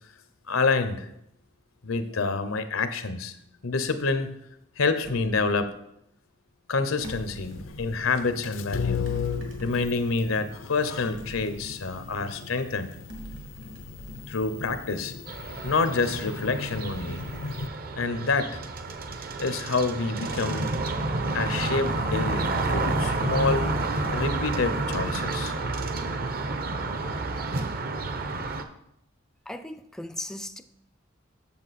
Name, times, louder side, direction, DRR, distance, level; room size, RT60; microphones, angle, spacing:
voice 1, 0.5-1.1 1.8-3.3 3.6-4.3 4.8-5.7 6.7-9.1 9.6-12.9 14.3-15.1 15.6-17.2 18.0-18.6 19.4-20.7 21.3-23.7 24.1-25.5, left 4 dB, 90° left, 0.8 m, -27 dB
sound 1, 5.0-5.5 7.0-8.0 9.1-10.3 11.1-12.4 13.1-15.0, right 1 dB, 70° right, 2.2 m, -44 dB
sound 2, 7.0-17.7, left 6 dB, 75° left, 0.5 m, -37 dB
sound 3, 15.3-28.6, right 2 dB, 45° right, 0.7 m, -30 dB
voice 2, 29.5-30.6, left 1 dB, 5° left, 0.3 m, -37 dB
8.6 x 6.9 x 4.2 m
head